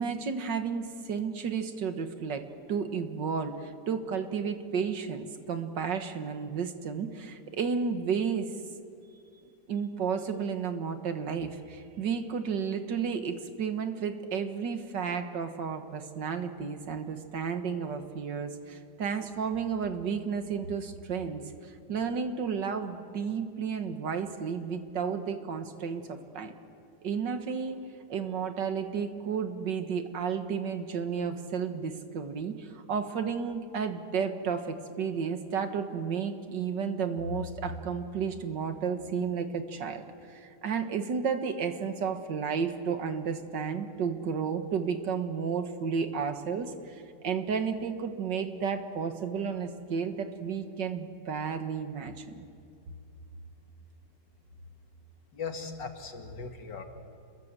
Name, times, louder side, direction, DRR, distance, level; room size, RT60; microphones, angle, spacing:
voice 1, 0.0-2.4 2.7-8.5 9.7-26.5 27.0-27.8 28.1-52.4, right 6 dB, 80° right, 7 dB, 2.1 m, -32 dB
voice 2, 55.3-56.8, left 5 dB, 80° left, 4 dB, 2.6 m, -38 dB
28.5 x 22.0 x 7.6 m, 2.4 s
omnidirectional pair, 1.9 m